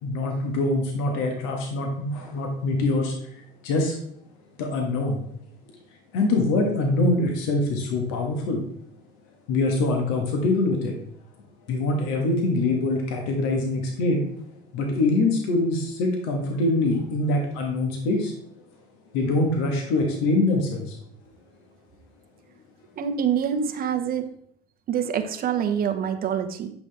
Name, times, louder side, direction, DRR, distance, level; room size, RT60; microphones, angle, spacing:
voice 1, 0.0-3.1 3.6-4.0 4.6-5.2 6.1-8.6 9.5-10.9 11.7-14.2 14.7-18.3 19.1-21.0, left 2 dB, 70° left, 2 dB, 1.7 m, -24 dB
voice 2, 23.0-24.3 24.9-26.7, right 8 dB, 45° right, 7 dB, 1.0 m, -25 dB
9.1 x 5.9 x 3.5 m, 0.71 s
hypercardioid pair, 80°, 21 cm